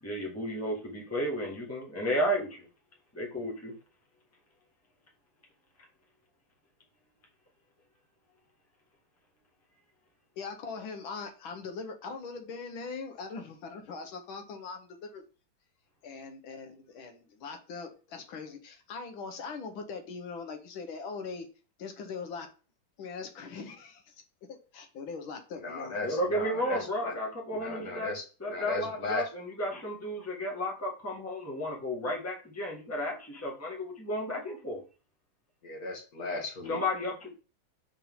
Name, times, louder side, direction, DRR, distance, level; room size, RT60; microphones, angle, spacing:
voice 1, 0.0-2.7 3.1-3.7 26.0-28.1 28.4-34.8 36.7-37.3, equal, 10° left, -2 dB, 1.4 m, -33 dB
voice 2, 10.4-15.2 16.0-21.5 21.8-22.5 23.0-24.2 24.5-26.0, left 4 dB, 85° left, 5 dB, 1.7 m, -41 dB
voice 3, 25.6-27.1 27.5-29.3 35.6-36.8, left 2 dB, 50° left, -1 dB, 2.0 m, -36 dB
4.5 x 4.2 x 5.5 m, 0.35 s
omnidirectional pair, 2.1 m